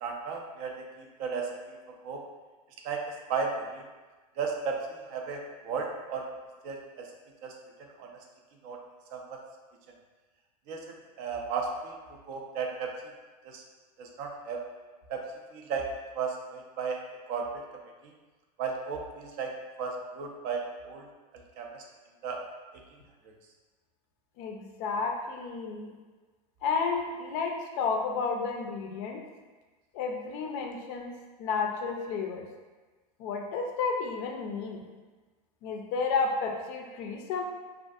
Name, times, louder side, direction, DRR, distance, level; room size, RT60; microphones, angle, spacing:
voice 1, 0.0-1.8 2.0-2.2 2.8-3.8 4.4-6.3 6.6-7.1 7.4-7.6 8.0-8.1 8.6-8.8 9.1-9.4 10.7-11.9 12.3-12.9 13.4-13.6 14.0-14.6 15.1-15.2 15.5-17.0 17.3-17.6 18.0-18.1 18.6-21.1 21.6-21.8 22.2-22.4 23.2-23.3, right 5 dB, 45° right, 2 dB, 0.4 m, -35 dB
voice 2, 24.4-25.9 26.6-29.2 29.9-32.5 33.2-34.9 35.6-37.4, left 4 dB, 50° left, 2 dB, 0.4 m, -32 dB
2.5 x 2.4 x 2.3 m, 1.3 s
supercardioid pair, 130°, 20 cm